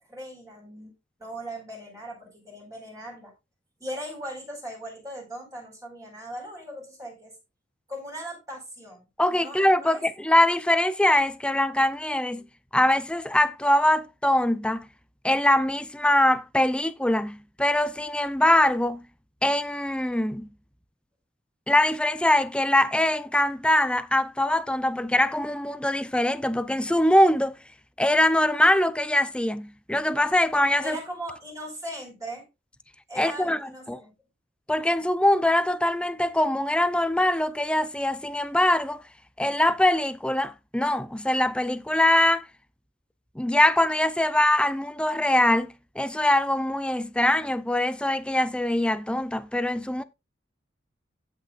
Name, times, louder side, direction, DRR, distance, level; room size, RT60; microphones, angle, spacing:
voice 1, 0.1-0.9 1.2-3.3 3.8-7.3 7.9-9.0 9.3-10.0 30.8-32.4 33.1-34.1, equal, 20° right, 4.7 m, -39 dB
voice 2, 9.2-12.4 12.7-14.9 15.2-19.0 19.4-20.5 21.7-27.6 28.0-31.0 33.2-33.6 33.9-34.0 34.7-39.0 39.4-42.5 43.4-50.0, left 1 dB, 5° left, 0.5 m, -23 dB
16.5 x 6.0 x 2.4 m
head